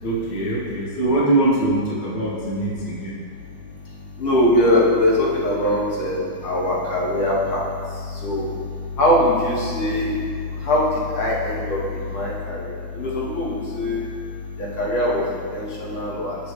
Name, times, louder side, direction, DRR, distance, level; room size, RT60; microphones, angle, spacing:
voice 1, 0.0-3.2, right 2 dB, 50° left, -5 dB, 1.5 m, -22 dB
voice 2, 3.3-14.1 14.6-16.4, left 1 dB, 90° left, -5 dB, 2.1 m, -22 dB
7.2 x 6.8 x 3.1 m, 2.1 s
omnidirectional pair, 2.2 m